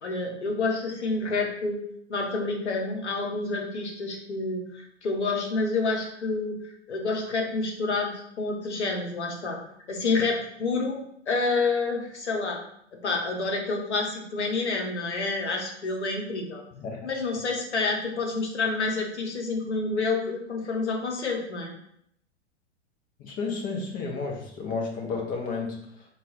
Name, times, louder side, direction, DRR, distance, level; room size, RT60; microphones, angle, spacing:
voice 1, 0.0-1.8 2.1-9.6 9.9-12.6 13.0-16.6 17.0-21.7, left 3 dB, 70° left, 1 dB, 1.0 m, -28 dB
voice 2, 23.2-25.8, left 4 dB, 25° left, 1 dB, 0.8 m, -32 dB
3.9 x 2.4 x 4.0 m, 0.72 s
figure-of-eight pair, 95°, 35 cm